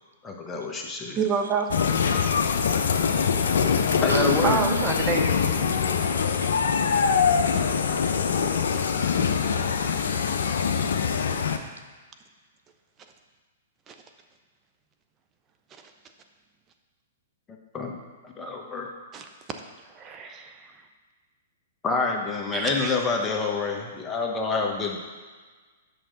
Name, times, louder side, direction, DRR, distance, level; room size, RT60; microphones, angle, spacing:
voice 1, 0.2-1.2 4.0-4.6 17.7-18.0 18.2-18.9 21.8-25.0, left 4 dB, 20° left, 1 dB, 1.2 m, -27 dB
voice 2, 1.2-1.7 4.4-5.3 5.6-6.0 13.9-14.0 19.1-19.2 19.9-20.7 22.5-23.0, right 6 dB, 25° right, 5 dB, 0.8 m, -28 dB
sound 1, 1.7-11.6, left 6 dB, 70° left, 0.6 m, -23 dB
voice 3, 1.8-2.7 4.1-6.5, right 3 dB, 85° right, 7 dB, 0.6 m, -33 dB
8.5 x 6.3 x 4.0 m, 1.4 s
hypercardioid pair, 115°, 0 cm